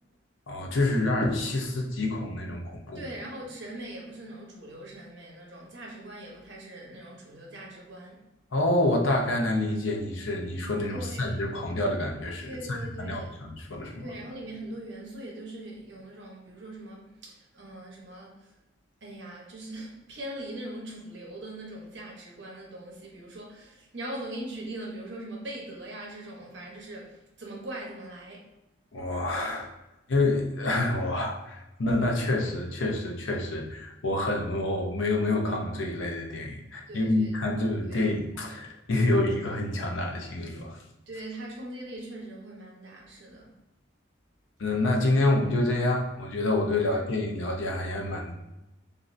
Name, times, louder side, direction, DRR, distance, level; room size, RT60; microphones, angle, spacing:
voice 1, 0.5-3.0 8.5-14.1 28.9-29.7 30.1-40.8 44.6-48.3, left 2 dB, 75° left, 0 dB, 0.6 m, -27 dB
voice 2, 2.9-8.2 10.9-11.3 12.4-13.3 14.0-18.6 19.0-28.5 36.9-37.4 37.9-38.0 41.1-43.6 46.9-47.1, right 1 dB, 60° right, -2 dB, 0.8 m, -41 dB
3.1 x 2.6 x 2.5 m, 0.96 s
head